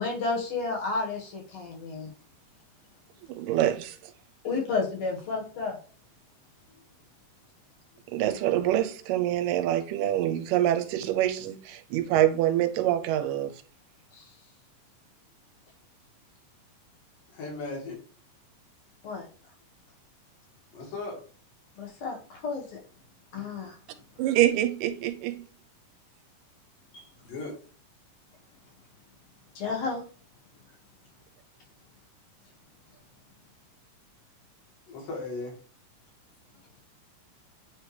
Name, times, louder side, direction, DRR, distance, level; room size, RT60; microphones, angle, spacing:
voice 1, 0.0-2.1 4.4-5.8 14.1-14.3 19.0-19.3 21.8-22.8 23.3-23.8 26.9-27.1 29.6-30.0, left 4 dB, 60° left, 2.3 m, -31 dB
voice 2, 3.2-4.0 8.1-13.5 24.2-25.4, right 12 dB, 85° right, 2.2 m, -25 dB
voice 3, 17.3-18.0 20.7-21.2 27.2-27.5 34.9-35.5, left 3 dB, 80° left, 3.5 m, -36 dB
9.2 x 3.2 x 3.3 m
omnidirectional pair, 3.8 m